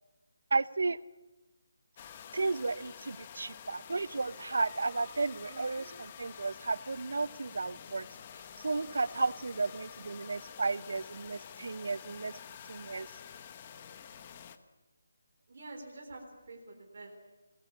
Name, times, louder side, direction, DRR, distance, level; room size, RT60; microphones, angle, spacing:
voice 1, 0.5-1.0 2.3-8.1 8.6-12.3 12.7-13.1, right 3 dB, 60° right, 19 dB, 0.8 m, -33 dB
sound 1, 2.0-14.6, left 8 dB, 15° left, 0.9 m, -49 dB
voice 2, 5.5-5.9 15.5-17.1, right 2 dB, 35° right, 0 dB, 3.9 m, -48 dB
26.0 x 19.5 x 8.5 m, 1.1 s
hypercardioid pair, 180°, 0 cm